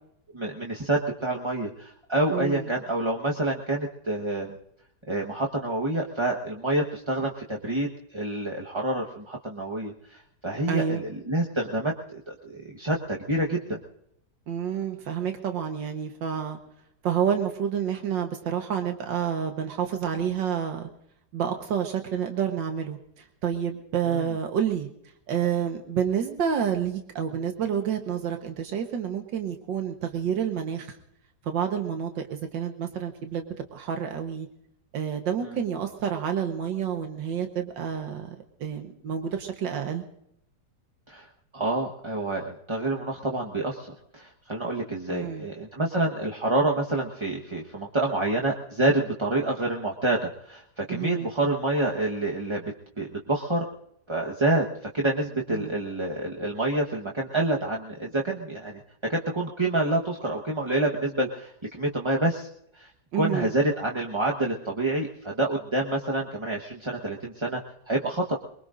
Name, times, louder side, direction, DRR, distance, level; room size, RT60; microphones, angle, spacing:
voice 1, 0.3-4.6 5.1-13.8 24.1-24.2 41.1-41.3 41.5-53.6 54.1-54.6 54.9-58.8 59.1-62.5 62.7-62.9 63.1-67.6 67.9-68.4, right 2 dB, 20° right, -2 dB, 1.0 m, -27 dB
voice 2, 2.3-2.7 10.7-11.0 14.5-16.6 17.0-20.9 21.3-24.9 25.3-31.0 31.4-34.5 34.9-38.4 38.6-40.0 45.1-45.5 50.9-51.3 55.5-55.8 63.1-63.5, right 8 dB, 90° right, 5 dB, 1.9 m, -29 dB
24.0 x 22.5 x 2.6 m, 0.74 s
omnidirectional pair, 1.9 m